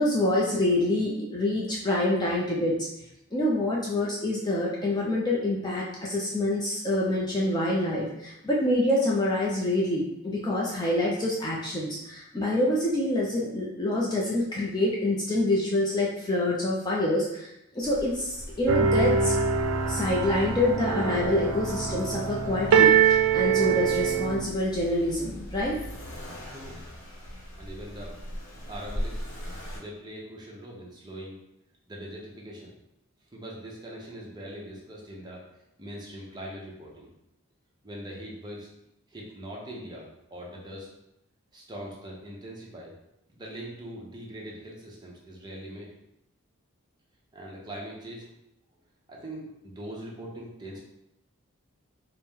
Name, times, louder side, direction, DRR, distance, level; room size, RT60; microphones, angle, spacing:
voice 1, 0.0-2.8 3.3-19.3 19.9-25.8, left 1 dB, 20° left, -5 dB, 0.4 m, -26 dB
Accelerating revving vroom, 17.8-29.8, equal, 65° left, 0.7 m, -40 dB
sound 1, 18.7-24.4, right 7 dB, 85° right, 0.4 m, -24 dB
voice 2, 26.4-26.8 27.5-28.2 28.7-29.2 29.7-31.4 31.9-32.7 33.3-35.4 35.8-37.1 37.8-38.7 39.1-40.9 41.5-42.9 43.3-45.9 47.3-48.3 49.1-50.8, right 1 dB, 20° right, -4 dB, 0.7 m, -41 dB
4.2 x 2.1 x 3.6 m, 0.82 s
head